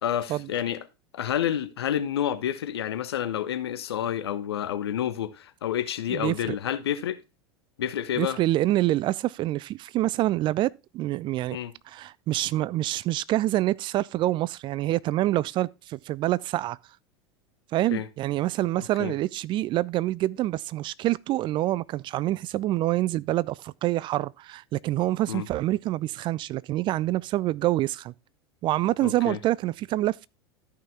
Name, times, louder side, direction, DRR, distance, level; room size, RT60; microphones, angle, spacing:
voice 1, 0.0-0.8 1.1-7.2 7.8-8.4 11.5-11.7 17.9-18.1 19.0-19.1 25.3-25.5 29.0-29.4, left 10 dB, 70° left, 1.1 m, -29 dB
voice 2, 6.1-6.6 8.2-11.6 11.9-16.8 17.7-28.1 28.6-30.3, right 15 dB, 35° right, 0.4 m, -26 dB
13.0 x 5.7 x 3.4 m
figure-of-eight pair, 80°, 13 cm